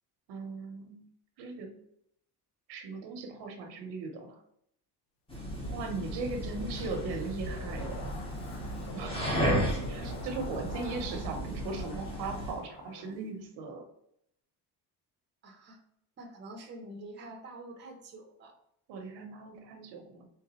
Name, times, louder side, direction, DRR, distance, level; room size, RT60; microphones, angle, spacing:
voice 1, 0.3-1.0 1.4-1.8 2.7-4.4 5.7-8.1 8.9-13.8 18.9-20.3, right 4 dB, 80° right, 5 dB, 0.9 m, -38 dB
sound 1, 5.3-12.6, equal, 15° left, 0.8 m, -34 dB
Zipper (clothing), 5.5-13.1 13.4-13.5, left 2 dB, 70° left, 1.0 m, -46 dB
voice 2, 15.4-15.8 16.2-18.5, right 2 dB, 25° right, 2 dB, 0.7 m, -47 dB
3.8 x 3.5 x 3.0 m, 0.73 s
cardioid pair, 150°, 40 cm